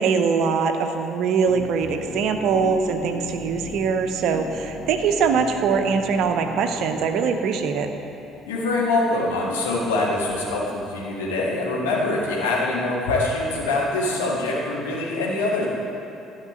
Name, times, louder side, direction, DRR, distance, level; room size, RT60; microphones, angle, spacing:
voice 1, 0.0-7.9, right 5 dB, 60° right, 6 dB, 0.8 m, -22 dB
sound 1, 1.5-10.0, left 4 dB, 55° left, 0.8 m, -39 dB
voice 2, 8.5-15.6, left 2 dB, 75° left, -4 dB, 2.0 m, -24 dB
12.0 x 5.8 x 7.0 m, 2.9 s
figure-of-eight pair, 50°, 0 cm